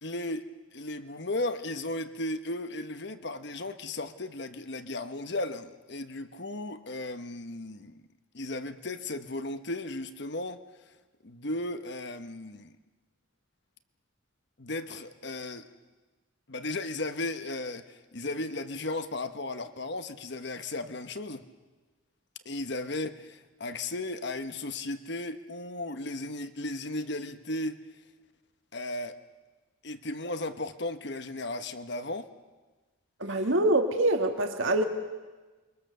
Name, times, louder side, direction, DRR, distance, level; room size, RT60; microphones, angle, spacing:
voice 1, 0.0-8.0 8.3-10.6 11.2-12.8 14.6-15.7 16.5-21.5 22.4-27.8 28.7-29.2 29.8-32.3 33.3-33.4, left 2 dB, 55° left, 1.2 m, -35 dB
voice 2, 33.2-34.9, right 1 dB, 75° right, 2.0 m, -25 dB
28.5 x 23.0 x 6.8 m
head